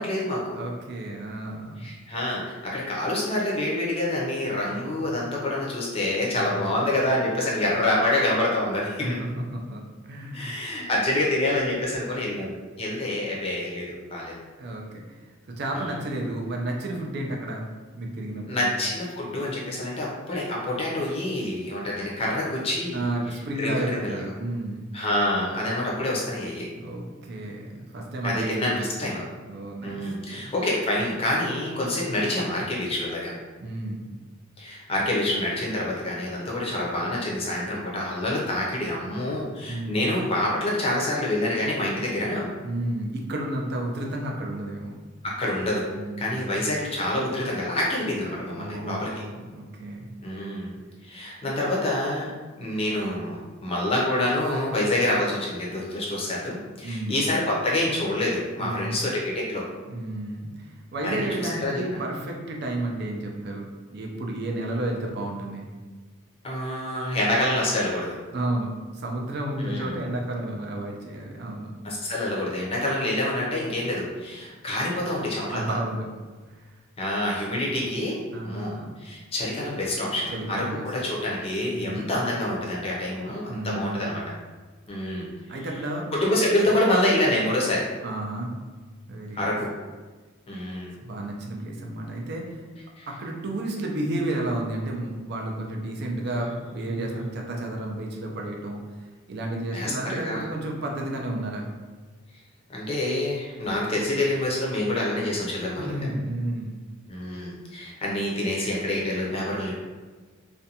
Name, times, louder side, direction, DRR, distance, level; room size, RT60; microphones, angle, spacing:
voice 1, 0.0-0.6 1.8-9.2 10.3-14.3 15.8-16.0 18.5-23.0 23.6-24.2 24.9-26.7 28.2-29.2 29.8-33.3 34.6-42.5 45.2-45.9 46.2-49.2 50.2-50.7 51.0-52.3 52.6-59.6 61.0-61.8 66.4-68.2 69.6-70.0 71.8-75.6 77.0-78.2 78.4-84.2 84.9-85.3 86.1-87.8 89.3-89.7 90.5-91.0 93.0-93.1 97.0-97.2 99.7-100.4 102.7-106.0 107.1-109.7, left 1 dB, 30° left, -4 dB, 0.5 m, -27 dB
voice 2, 0.5-1.9 6.3-6.7 9.0-10.6 14.6-15.0 15.5-17.6 17.9-18.7 22.9-24.9 26.8-28.9 29.5-30.0 30.3-30.5 33.6-34.1 39.7-40.2 42.6-44.9 45.9-46.5 48.5-50.1 56.8-57.2 58.6-59.0 59.9-65.7 68.3-71.7 75.5-76.1 76.5-76.6 78.3-79.0 80.3-80.9 81.7-82.1 83.5-84.1 85.5-86.1 88.0-88.5 89.1-89.6 91.0-92.7 93.1-98.8 99.3-101.7 105.8-106.8, right 1 dB, 50° right, 0 dB, 0.4 m, -32 dB
2.5 x 2.2 x 2.7 m, 1.3 s
head